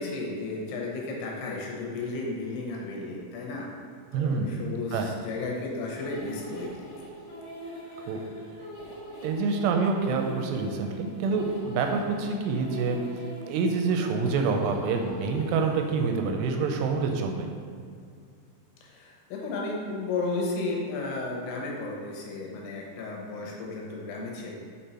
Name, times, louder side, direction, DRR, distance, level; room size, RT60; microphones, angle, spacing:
voice 1, 0.0-3.7 4.1-6.7 7.6-8.4 18.8-24.5, left 3 dB, 80° left, -1 dB, 2.8 m, -34 dB
voice 2, 4.1-4.5 4.9-5.1 8.0-8.2 9.2-13.0 13.4-17.5, right 4 dB, 85° right, 4 dB, 2.6 m, -27 dB
sound 1, 5.9-16.5, right 1 dB, 55° left, 1.9 m, -42 dB
5.5 x 5.3 x 4.3 m, 2.2 s
omnidirectional pair, 4.9 m